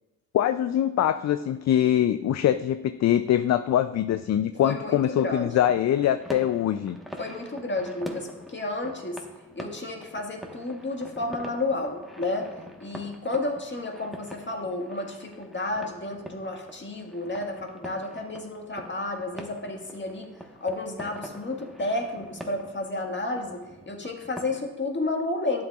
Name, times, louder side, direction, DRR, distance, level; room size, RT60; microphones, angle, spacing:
voice 1, 0.3-7.0, left 11 dB, 45° left, 11 dB, 0.4 m, -23 dB
voice 2, 4.6-5.5 7.2-9.2 9.5-12.5 12.8-20.3 20.6-25.6, left 2 dB, 30° left, 2 dB, 1.7 m, -31 dB
sound 1, 5.7-24.7, equal, ahead, 1.2 m, -44 dB
11.5 x 7.5 x 2.4 m, 1.1 s
hypercardioid pair, 45°, 38 cm